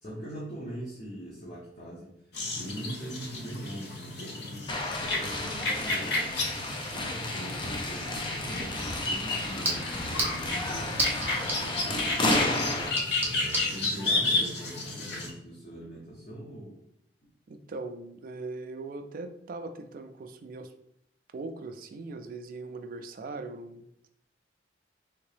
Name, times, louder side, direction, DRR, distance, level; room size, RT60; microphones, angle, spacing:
voice 1, 0.0-2.2 2.5-6.2 7.1-11.2 11.5-12.5 13.2-16.8, right 1 dB, 40° left, -7 dB, 0.9 m, -42 dB
sound 1, 2.3-15.3, left 2 dB, 65° left, 0.7 m, -32 dB
sound 2, 4.7-12.9, left 2 dB, 25° left, 0.4 m, -32 dB
sound 3, 8.4-13.7, right 1 dB, 10° right, 0.7 m, -35 dB
voice 2, 14.0-14.5 17.5-20.7 21.3-24.1, right 3 dB, 50° right, 7 dB, 0.3 m, -40 dB
3.6 x 2.8 x 3.2 m, 0.76 s
head